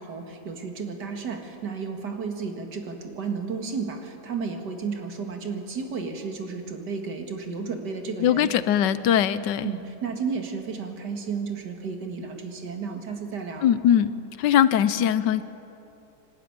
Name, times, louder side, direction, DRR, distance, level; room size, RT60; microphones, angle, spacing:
voice 1, 0.0-8.5 9.6-13.7, right 5 dB, 75° right, 4 dB, 2.4 m, -33 dB
voice 2, 8.2-9.7 13.6-14.1 14.4-15.4, left 10 dB, 85° left, 14 dB, 1.4 m, -21 dB
26.0 x 12.0 x 9.6 m, 2.9 s
omnidirectional pair, 1.8 m